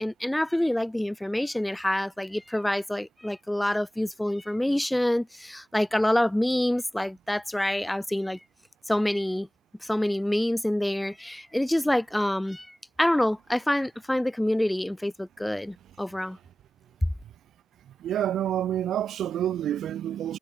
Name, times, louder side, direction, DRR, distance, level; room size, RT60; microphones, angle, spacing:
voice 1, 0.0-8.4 8.9-9.5 9.8-16.4, left 1 dB, 5° left, 2.4 m, -27 dB
voice 2, 18.0-20.4, right 11 dB, 70° right, 7.2 m, -28 dB
cardioid pair, 90°, 0 cm